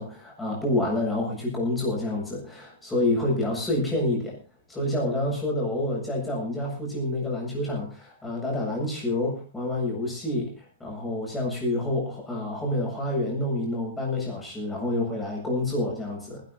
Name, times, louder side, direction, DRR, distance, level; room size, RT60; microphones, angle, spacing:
voice 1, 0.0-4.4 4.7-16.4, left 1 dB, 5° left, -2 dB, 7.7 m, -28 dB
19.0 x 12.5 x 4.0 m, 0.34 s
supercardioid pair, 170°, 0 cm